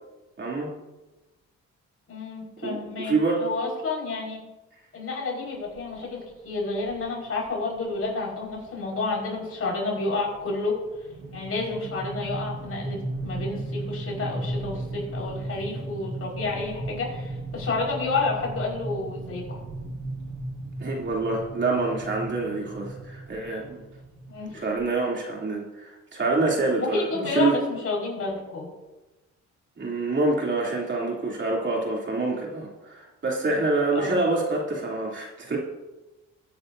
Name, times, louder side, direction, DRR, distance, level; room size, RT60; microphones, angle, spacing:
voice 1, 0.4-0.7 2.6-3.4 20.8-23.9 24.5-27.6 29.8-35.6, right 3 dB, 40° right, -2 dB, 3.1 m, -26 dB
voice 2, 2.1-4.4 4.9-10.8 11.3-19.6 24.3-24.6 26.8-28.7 33.9-34.2, left 3 dB, 50° left, -2 dB, 5.0 m, -30 dB
sound 1, 5.8-6.0 6.9-7.0 7.4-7.5 7.8-8.1 8.5-24.9, right 2 dB, 80° right, 2.0 m, -36 dB
20.0 x 10.0 x 2.7 m, 1.1 s
cardioid pair, 90°, 30 cm